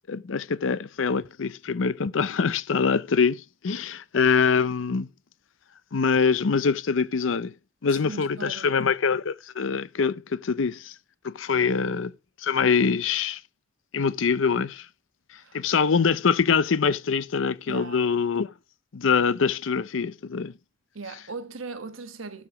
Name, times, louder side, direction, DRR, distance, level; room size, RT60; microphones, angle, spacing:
voice 1, 0.1-5.1 5.9-7.5 7.8-10.9 11.2-12.1 12.4-13.4 13.9-14.9 15.5-18.5 18.9-20.5, left 5 dB, 70° left, 0.6 m, -24 dB
voice 2, 7.8-8.7 11.5-11.7 15.4-15.7 17.7-18.0 20.9-22.5, right 4 dB, 80° right, 1.2 m, -39 dB
12.5 x 4.9 x 4.6 m
head